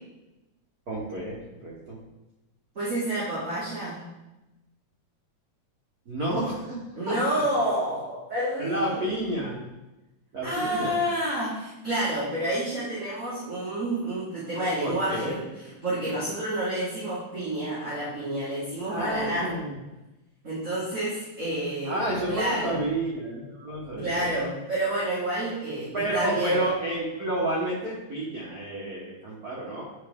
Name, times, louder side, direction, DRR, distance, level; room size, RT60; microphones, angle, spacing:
voice 1, 0.9-2.0 6.1-7.1 8.6-9.7 10.3-11.0 14.8-15.4 18.9-19.8 21.8-24.4 25.9-29.8, right 1 dB, 70° right, -5 dB, 0.8 m, -30 dB
voice 2, 2.7-4.0 6.9-9.1 10.4-15.5 15.8-19.5 20.4-22.8 24.0-26.6, right 1 dB, 30° right, -10 dB, 1.6 m, -29 dB
9.5 x 4.3 x 3.5 m, 1.0 s
omnidirectional pair, 3.5 m